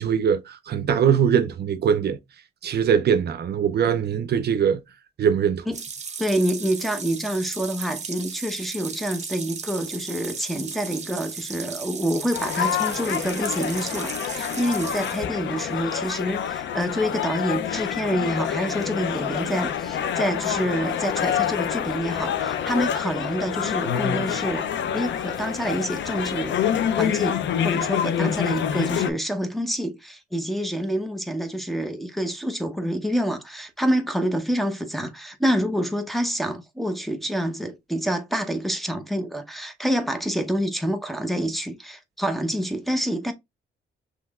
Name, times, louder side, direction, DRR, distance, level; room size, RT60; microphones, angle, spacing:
voice 1, 0.0-2.2 2.6-4.8 5.2-5.6, right 8 dB, 55° right, 0.6 m, -21 dB
sound 1, 5.7-15.3, right 5 dB, 35° right, 1.0 m, -36 dB
voice 2, 6.2-24.7 24.9-26.6 27.0-43.3, equal, ahead, 0.9 m, -27 dB
sound 2, 12.3-29.1, left 9 dB, 65° left, 0.6 m, -27 dB
5.5 x 3.1 x 2.4 m
cardioid pair, 90°, 20 cm